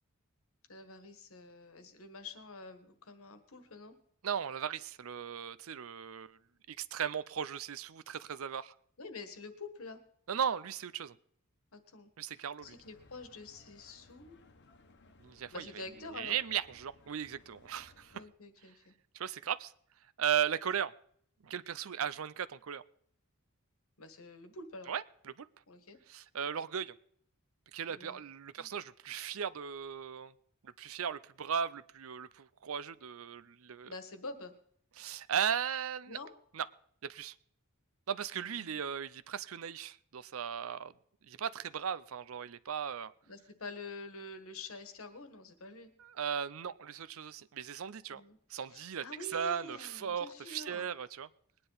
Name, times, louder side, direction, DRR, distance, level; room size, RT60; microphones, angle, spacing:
voice 1, 0.7-4.0 9.0-10.0 11.7-14.4 15.5-16.4 18.1-19.0 24.0-24.9 25.7-26.0 27.9-28.2 28.6-28.7 33.8-34.5 36.1-36.3 38.3-38.8 43.3-45.9 48.1-48.4 48.7-50.9, left 2 dB, 75° left, 1.6 m, -47 dB
voice 2, 4.2-6.4 6.7-8.7 10.3-11.1 12.2-12.7 15.2-15.8 16.1-18.2 19.1-19.7 20.2-20.9 21.4-22.8 24.9-25.5 26.1-26.9 27.7-30.3 30.6-33.9 35.0-36.2 36.5-36.7 37.0-37.3 38.1-40.9 41.2-43.1 46.0-48.2 48.5-49.0 49.3-51.3, right 8 dB, 70° right, 0.6 m, -37 dB
sound 1, 12.6-18.3, left 3 dB, 55° left, 1.1 m, -62 dB
21.0 x 9.8 x 4.0 m
head